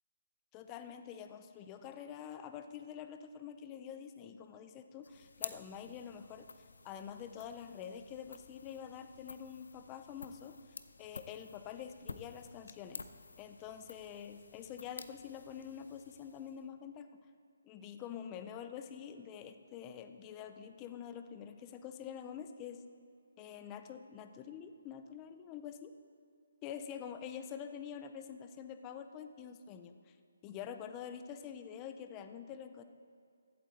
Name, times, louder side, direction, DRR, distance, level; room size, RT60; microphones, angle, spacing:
voice 1, 0.5-6.5 6.8-10.6 11.0-13.0 13.4-17.1 17.6-22.8 23.4-25.9 26.6-30.2 30.4-32.8, left 8 dB, 15° left, 8 dB, 0.4 m, -46 dB
sound 1, 5.0-16.7, left 4 dB, 75° left, 0.6 m, -51 dB
15.0 x 8.5 x 4.1 m, 2.4 s
hypercardioid pair, 170°, 0 cm